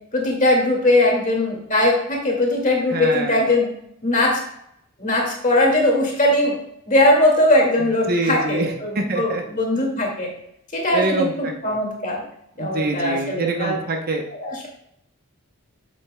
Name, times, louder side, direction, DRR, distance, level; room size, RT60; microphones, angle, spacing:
voice 1, 0.1-3.7 4.0-4.4 5.0-6.5 6.9-10.3 10.7-12.2 12.6-13.8 14.4-14.7, left 1 dB, 35° left, -1 dB, 2.1 m, -20 dB
voice 2, 2.9-3.4 8.1-9.4 10.9-11.3 11.6-11.8 12.6-14.2, right 2 dB, 40° right, 3 dB, 0.8 m, -25 dB
8.5 x 7.7 x 2.2 m, 0.75 s
head